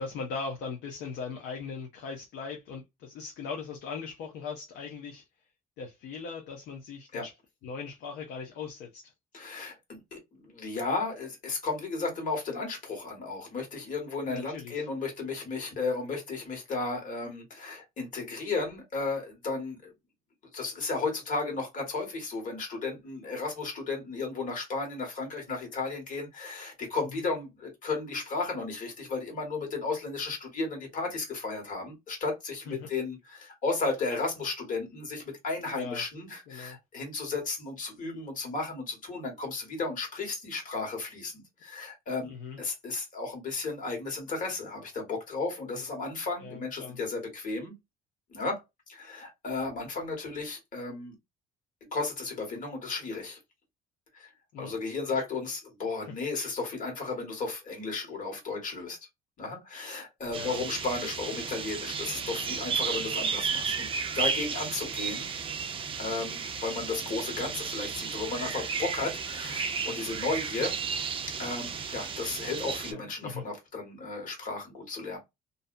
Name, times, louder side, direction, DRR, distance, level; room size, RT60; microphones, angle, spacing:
voice 1, 0.0-5.2 5.8-7.3 7.6-9.1 14.2-14.9 27.1-27.2 32.7-32.9 35.7-36.0 36.5-36.8 42.2-42.6 46.4-47.0 54.5-54.7 56.1-56.2 60.3-60.6 72.9-73.4, left 5 dB, 80° left, 0.7 m, -39 dB
voice 2, 9.3-19.9 20.5-42.3 42.6-47.7 48.3-48.6 48.9-51.1 51.9-53.4 54.1-54.3 54.6-59.0 59.4-65.3 66.0-70.8 71.3-75.2, left 3 dB, 50° left, 1.5 m, -34 dB
sound 1, 60.3-72.9, right 6 dB, 30° right, 0.4 m, -33 dB
2.6 x 2.1 x 2.5 m
cardioid pair, 110°, 17 cm